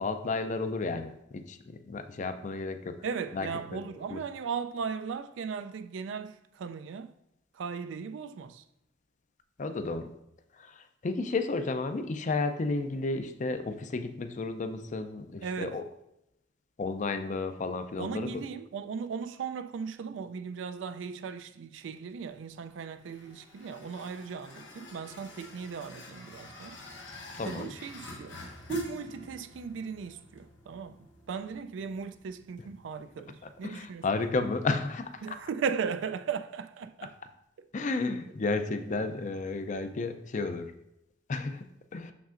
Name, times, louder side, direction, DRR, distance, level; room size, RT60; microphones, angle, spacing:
voice 1, 0.0-3.0 3.3-3.8 4.1-4.2 9.6-10.1 10.6-15.8 16.8-18.4 27.4-27.7 33.6-35.2 37.7-40.7 41.3-42.1, left 3 dB, 40° left, 0.4 m, -32 dB
voice 2, 3.0-7.2 7.5-8.6 15.4-15.8 18.0-26.8 27.4-28.4 28.7-34.1 35.2-37.2 37.6-37.7, right 6 dB, 85° right, 0.4 m, -37 dB
sound 1, 22.1-35.5, left 2 dB, 75° left, 1.1 m, -48 dB
6.4 x 5.9 x 2.5 m
head